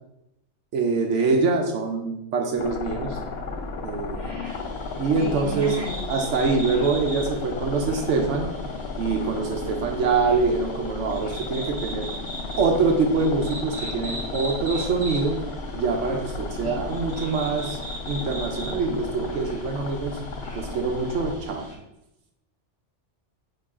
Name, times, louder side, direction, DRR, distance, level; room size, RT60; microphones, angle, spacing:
voice 1, 0.7-3.2 3.8-4.3 5.0-5.8 6.1-8.5 9.0-12.1 12.6-15.4 15.7-17.8 18.1-20.2 20.5-21.6, right 4 dB, 80° right, 3 dB, 1.0 m, -24 dB
sound 1, 2.6-21.4, left 3 dB, 60° left, 0.8 m, -34 dB
voice 2, 4.2-4.6 5.2-6.0 16.6-16.8, right 1 dB, 40° right, -2 dB, 1.3 m, -34 dB
sound 2, 4.4-21.7, right 1 dB, 15° left, 1.8 m, -40 dB
8.7 x 3.0 x 3.7 m, 0.87 s
omnidirectional pair, 1.2 m